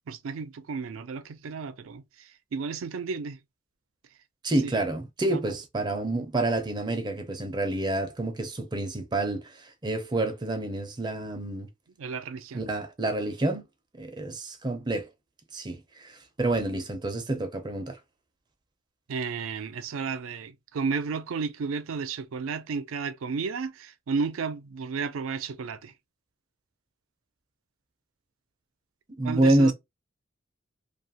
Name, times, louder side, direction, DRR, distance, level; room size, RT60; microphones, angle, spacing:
voice 1, 0.1-3.4 4.6-4.7 5.3-5.4 12.0-12.6 19.1-25.9 29.2-29.7, right 5 dB, 90° right, 0.4 m, -33 dB
voice 2, 4.4-11.7 12.5-13.6 14.0-15.1 15.5-18.0 29.2-29.7, right 2 dB, 20° right, 0.5 m, -28 dB
2.8 x 2.3 x 2.7 m
head